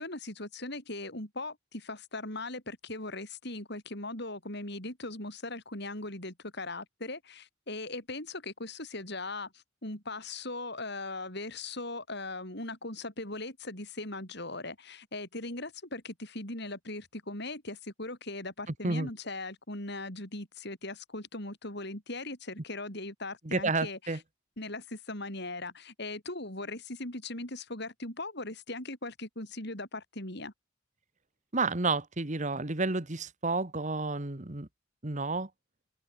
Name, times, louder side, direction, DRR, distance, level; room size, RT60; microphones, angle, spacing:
voice 1, 0.0-24.0 24.6-30.5, left 2 dB, 55° left, 7.2 m, -39 dB
voice 2, 23.4-24.2 31.5-34.7 35.0-35.5, right 3 dB, 40° right, 1.6 m, -30 dB
open air
head